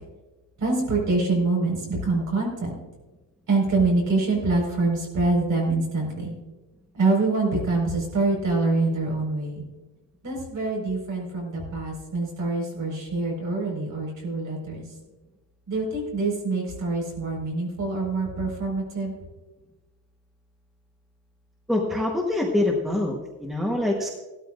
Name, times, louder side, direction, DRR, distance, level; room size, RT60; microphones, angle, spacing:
voice 1, 0.6-2.7 3.5-6.3 6.9-9.6 10.2-14.9 15.7-19.2, right 3 dB, 45° right, -1 dB, 4.6 m, -25 dB
voice 2, 21.7-24.1, left 1 dB, ahead, 0 dB, 1.0 m, -25 dB
17.0 x 12.5 x 2.4 m, 1.2 s
cardioid pair, 165°, 44 cm